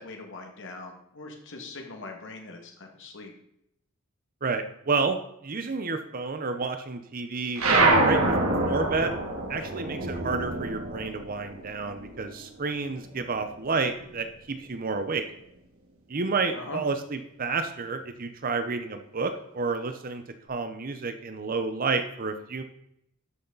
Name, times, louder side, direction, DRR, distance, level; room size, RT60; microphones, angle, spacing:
voice 1, 0.0-3.3 16.5-16.8, left 3 dB, 60° left, 2 dB, 2.1 m, -41 dB
voice 2, 4.4-7.6 8.0-8.4 8.7-9.2 9.5-15.2 16.1-22.6, right 4 dB, 40° right, 8 dB, 0.7 m, -30 dB
sound 1, 7.6-12.4 12.7-14.2, right 2 dB, 75° right, 2.2 m, -26 dB
12.5 x 6.5 x 4.0 m, 0.76 s
head